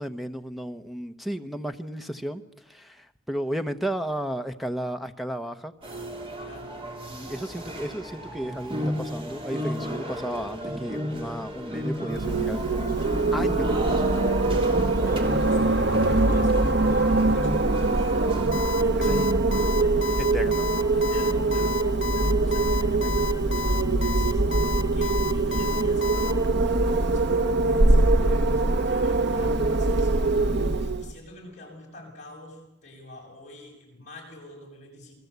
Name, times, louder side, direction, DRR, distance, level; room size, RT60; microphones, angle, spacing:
voice 1, 0.0-2.4 2.7-5.7 7.1-12.9 13.3-14.0 19.0-19.3 20.3-20.6, equal, ahead, 9 dB, 1.1 m, -33 dB
sound 1, 5.8-18.5, equal, 30° right, 3.1 m, -33 dB
voice 2, 6.4-6.8 14.6-18.3 18.7-20.5 20.9-24.6 24.9-35.2, left 1 dB, 40° left, 0 dB, 7.2 m, -46 dB
Wind, 12.1-31.1, right 2 dB, 65° right, 1.1 m, -23 dB
Alarm, 18.5-26.3, left 6 dB, 85° left, 1.8 m, -31 dB
28.0 x 21.0 x 8.2 m, 0.90 s
head